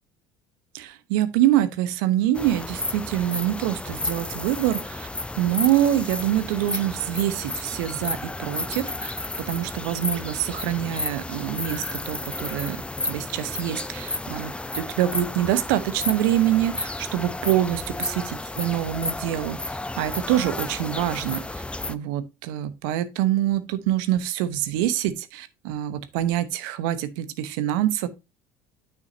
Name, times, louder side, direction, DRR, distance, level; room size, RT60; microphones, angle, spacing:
voice 1, 0.7-5.1 5.4-9.1 9.5-17.9 18.6-21.6 21.9-28.1, right 12 dB, 75° right, 1.0 m, -25 dB
sound 1, 2.3-22.0, left 2 dB, 10° left, 0.6 m, -32 dB
9.2 x 6.4 x 2.7 m
hypercardioid pair, 70°, 11 cm